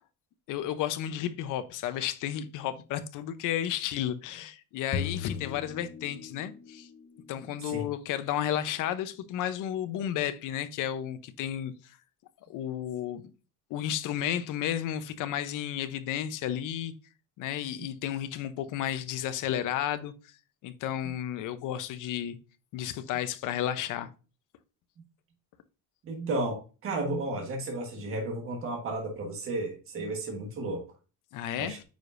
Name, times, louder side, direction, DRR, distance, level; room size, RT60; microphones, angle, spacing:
voice 1, 0.5-6.9 7.3-11.7 12.5-13.2 13.7-16.9 17.4-20.1 20.6-22.4 22.7-24.1 31.3-31.8, left 11 dB, 65° left, 0.8 m, -32 dB
sound 1, 4.9-6.7, left 6 dB, 30° left, 0.8 m, -36 dB
voice 2, 26.0-30.8 31.6-31.8, right 2 dB, 40° right, 1.4 m, -33 dB
9.2 x 5.0 x 2.6 m
cardioid pair, 165°, 34 cm